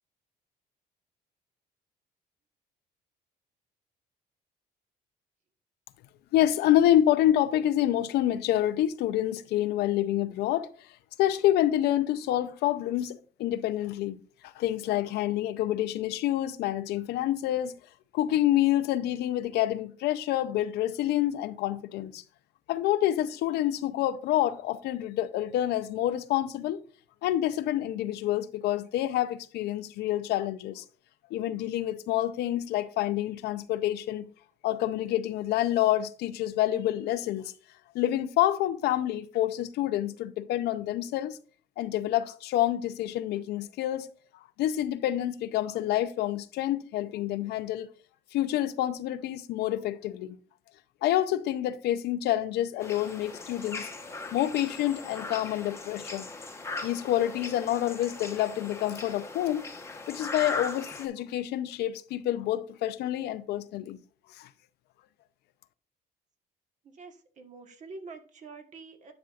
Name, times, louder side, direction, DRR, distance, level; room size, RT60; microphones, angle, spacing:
voice 1, 6.3-10.7 11.2-17.8 18.1-22.2 22.7-26.8 27.2-30.8 31.3-34.3 34.6-37.5 37.9-41.4 41.8-44.1 44.6-47.9 48.3-50.3 51.0-53.9 54.3-56.3 56.8-59.7 60.1-64.0 64.3-64.5, left 13 dB, 80° left, 0.6 m, -27 dB
sound 1, 52.8-61.1, left 3 dB, 15° left, 1.1 m, -39 dB
voice 2, 66.8-69.1, right 3 dB, 45° right, 1.3 m, -46 dB
10.5 x 5.5 x 2.4 m
cardioid pair, 110°, 17 cm